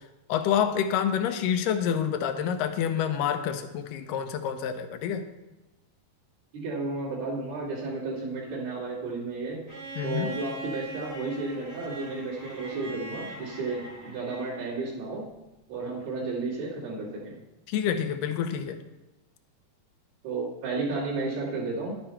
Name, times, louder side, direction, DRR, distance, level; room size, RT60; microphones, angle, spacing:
voice 1, 0.3-5.2 10.0-10.4 17.7-18.8, left 8 dB, 75° left, 8 dB, 2.1 m, -27 dB
voice 2, 6.5-9.6 10.0-15.2 15.7-17.3 20.2-22.0, right 3 dB, 70° right, -9 dB, 4.3 m, -32 dB
Bowed string instrument, 9.7-14.7 16.2-16.3, right 2 dB, 40° right, 0.3 m, -41 dB
11.5 x 8.8 x 4.5 m, 0.98 s
omnidirectional pair, 4.4 m